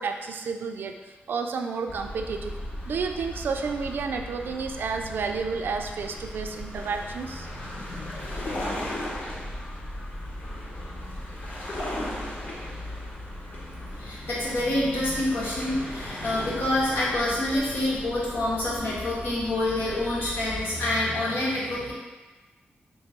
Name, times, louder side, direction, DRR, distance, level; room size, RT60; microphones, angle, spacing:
voice 1, 0.0-2.5 2.9-7.5, right 5 dB, 65° right, 5 dB, 0.3 m, -31 dB
sound 1, 1.9-20.7, left 1 dB, 45° left, 1.0 m, -37 dB
voice 2, 14.0-21.9, left 1 dB, 75° left, -7 dB, 1.3 m, -27 dB
3.1 x 3.0 x 4.3 m, 1.2 s
wide cardioid pair, 150°, 4 cm